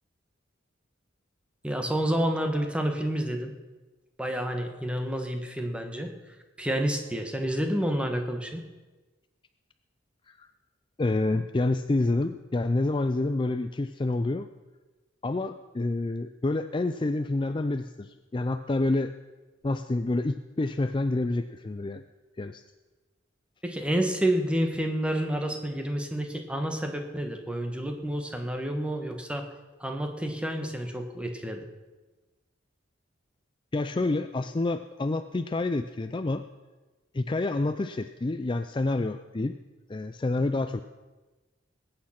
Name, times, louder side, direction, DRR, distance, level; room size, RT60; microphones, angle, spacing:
voice 1, 1.6-3.5 4.2-6.1 6.6-8.6 23.6-29.5 29.8-31.7, right 1 dB, 5° right, 4 dB, 1.4 m, -29 dB
voice 2, 11.0-14.5 15.2-19.1 19.6-22.1 22.4-22.6 33.7-36.5 37.1-39.6 39.9-40.8, left 2 dB, 25° left, 9 dB, 0.4 m, -28 dB
20.5 x 8.8 x 5.8 m, 1.2 s
head